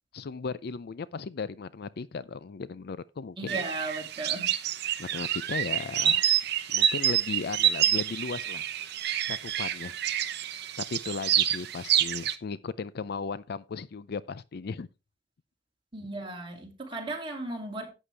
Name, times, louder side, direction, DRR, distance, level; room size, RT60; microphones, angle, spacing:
voice 1, 0.1-3.6 5.0-6.2 6.7-8.6 9.3-10.0 10.8-14.9, left 5 dB, 55° left, 0.4 m, -36 dB
voice 2, 3.4-4.5 15.9-17.9, right 2 dB, 30° right, 2.6 m, -36 dB
sound 1, 3.5-12.3, right 10 dB, 60° right, 0.8 m, -27 dB
11.0 x 8.3 x 3.4 m
head